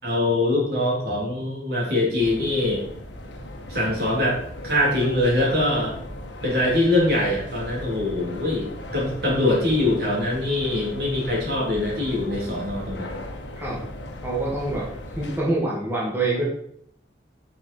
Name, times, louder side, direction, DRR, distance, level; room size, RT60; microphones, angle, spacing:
voice 1, 0.0-2.8 3.7-4.4 4.6-5.9 6.4-13.2, left 1 dB, 60° right, -4 dB, 3.4 m, -23 dB
sound 1, 2.2-15.4, left 1 dB, 85° left, 1.4 m, -37 dB
voice 2, 14.2-14.9 15.2-16.4, right 2 dB, 10° right, -6 dB, 2.3 m, -25 dB
8.5 x 6.0 x 4.6 m, 0.65 s
head